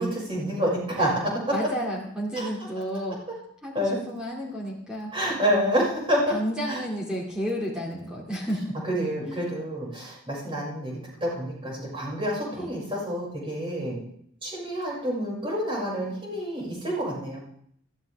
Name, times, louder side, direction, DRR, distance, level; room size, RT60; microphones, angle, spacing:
voice 1, 0.0-1.6 2.3-2.5 3.7-4.0 5.1-6.4 6.7-6.8 8.8-14.0 14.4-17.4, equal, 25° right, -5 dB, 6.3 m, -28 dB
voice 2, 1.5-3.2 3.6-5.2 6.3-8.7 9.2-9.5 12.5-12.7, equal, 5° right, -3 dB, 2.5 m, -31 dB
21.0 x 14.0 x 3.6 m, 0.69 s
head